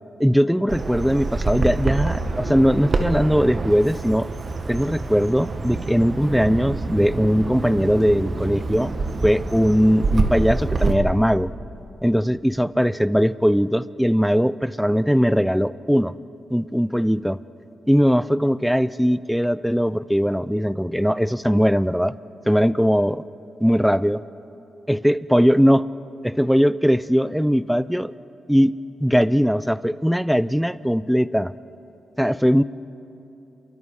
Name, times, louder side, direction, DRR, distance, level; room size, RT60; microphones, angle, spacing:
voice 1, 0.2-4.3 4.7-8.9 9.2-11.5 12.0-16.1 16.5-17.4 17.9-22.1 22.5-23.2 23.6-24.2 24.9-25.9 26.2-28.1 28.5-28.7 29.0-31.5 32.2-32.6, equal, ahead, 17 dB, 0.5 m, -20 dB
Bird vocalization bird call bird song, 0.7-10.9, right 3 dB, 45° right, 1.8 m, -26 dB
28.5 x 23.5 x 4.8 m, 2.9 s
cardioid pair, 80°, 0 cm